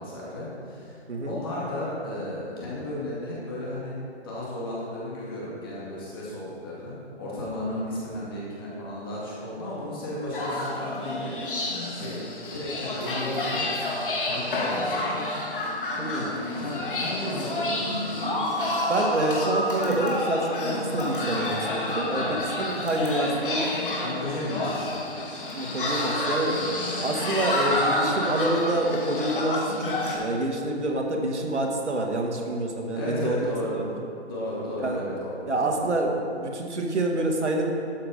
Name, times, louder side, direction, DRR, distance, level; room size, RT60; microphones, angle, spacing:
voice 1, 0.0-11.4 11.9-13.7 14.2-15.2 16.1-18.4 22.1-22.4 24.0-25.1 26.5-26.7 32.9-33.8 34.3-35.8, left 1 dB, 20° left, -7 dB, 2.1 m, -34 dB
sound 1, 10.3-30.1, left 1 dB, 50° left, 2.1 m, -29 dB
voice 2, 16.0-16.3 18.7-23.7 25.5-26.6 27.0-33.5 33.9-34.0 34.8-35.1 35.5-37.7, right 2 dB, 85° right, 2 dB, 1.8 m, -27 dB
12.5 x 6.7 x 5.0 m, 2.5 s
hypercardioid pair, 170°, 34 cm